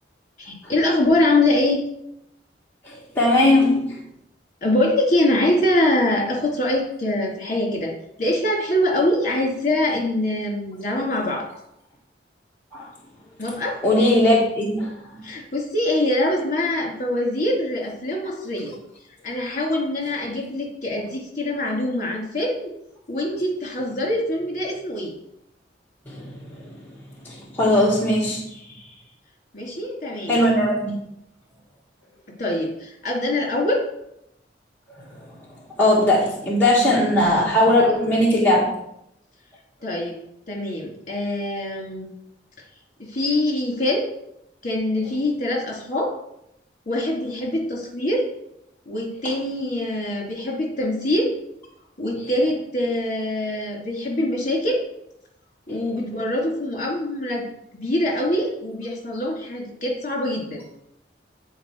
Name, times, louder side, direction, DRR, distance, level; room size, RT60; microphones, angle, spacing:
voice 1, 0.4-1.8 4.6-7.9 8.2-11.5 13.4-13.8 15.2-18.7 19.2-22.7 23.1-25.1 29.5-30.4 32.4-33.9 39.8-40.2 40.5-42.1 43.0-44.1 44.6-46.1 46.9-48.3 48.9-51.3 52.0-54.8 55.7-57.5 57.7-60.6, left 1 dB, 45° left, -1 dB, 2.4 m, -24 dB
voice 2, 2.8-4.0 12.7-12.9 13.8-14.9 26.1-26.5 27.2-28.4 30.3-31.0 35.2-35.3 35.8-38.7 55.7-55.8, left 1 dB, 10° left, -7 dB, 1.5 m, -19 dB
9.3 x 4.5 x 4.4 m, 0.79 s
head